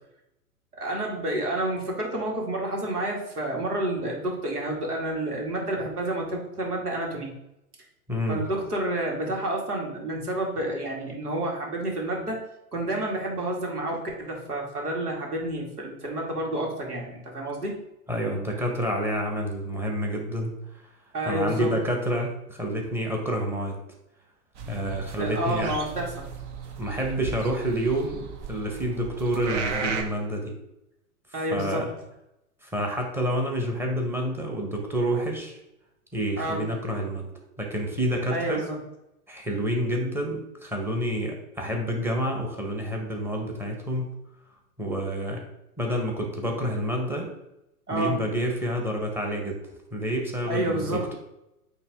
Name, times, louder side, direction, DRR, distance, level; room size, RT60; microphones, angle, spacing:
voice 1, 0.8-7.3 8.3-12.4 12.7-17.7 21.1-21.7 25.2-26.1 31.3-31.8 36.4-36.6 38.3-38.8 47.9-48.1 50.4-51.1, right 1 dB, 80° right, -1 dB, 2.2 m, -29 dB
voice 2, 8.1-8.4 18.1-20.5 21.3-23.8 24.7-25.7 26.8-30.6 31.5-31.9 32.6-35.6 36.1-37.3 37.6-38.6 39.3-44.1 44.8-45.4 45.8-47.3 47.9-49.6 49.9-51.1, equal, 5° right, 0 dB, 1.1 m, -28 dB
sound 1, 24.5-30.0, right 5 dB, 50° right, 1.1 m, -35 dB
8.5 x 3.2 x 3.6 m, 0.86 s
figure-of-eight pair, 105°, 45 cm